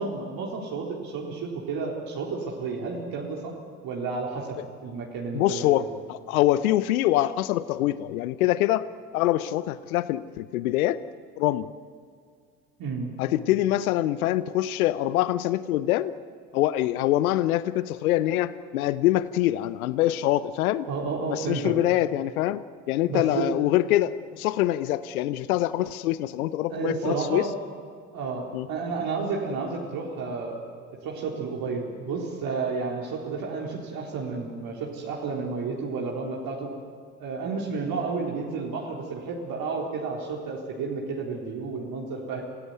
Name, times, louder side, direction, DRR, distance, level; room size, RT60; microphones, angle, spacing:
voice 1, 0.0-3.5 3.8-5.9 12.8-13.1 20.9-21.8 23.0-23.5 26.7-27.5 28.1-30.6 31.0-36.7 37.2-42.4, right 4 dB, 55° right, -2 dB, 4.0 m, -31 dB
voice 2, 5.3-8.9 9.1-11.0 11.4-11.7 13.2-16.1 16.5-20.9 21.3-27.5 28.5-28.7, left 14 dB, 75° left, 16 dB, 0.8 m, -24 dB
28.0 x 16.5 x 9.4 m, 2.2 s
hypercardioid pair, 65°, 43 cm